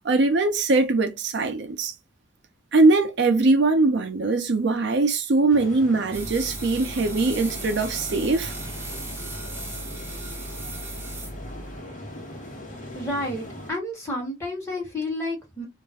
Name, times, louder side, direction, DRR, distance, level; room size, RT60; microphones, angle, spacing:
voice 1, 0.0-1.9 2.7-8.5, right 3 dB, 60° right, 0.5 m, -21 dB
sound 1, 5.5-13.7, left 1 dB, 40° left, 1.0 m, -40 dB
sound 2, 6.1-11.8, right 2 dB, 10° right, 0.5 m, -36 dB
voice 2, 12.9-15.7, left 1 dB, 15° left, 1.2 m, -30 dB
2.4 x 2.1 x 3.3 m
head